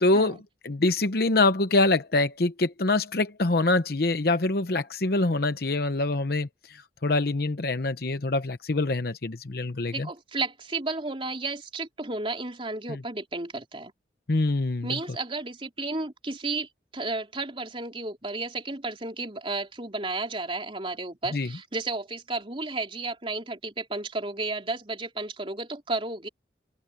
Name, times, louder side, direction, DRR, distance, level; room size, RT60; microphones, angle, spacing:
voice 1, 0.0-10.1 12.9-13.0 14.3-14.9 21.3-21.5, left 2 dB, 60° left, 0.9 m, -25 dB
voice 2, 9.9-13.9 14.8-26.3, right 3 dB, 30° right, 3.6 m, -33 dB
head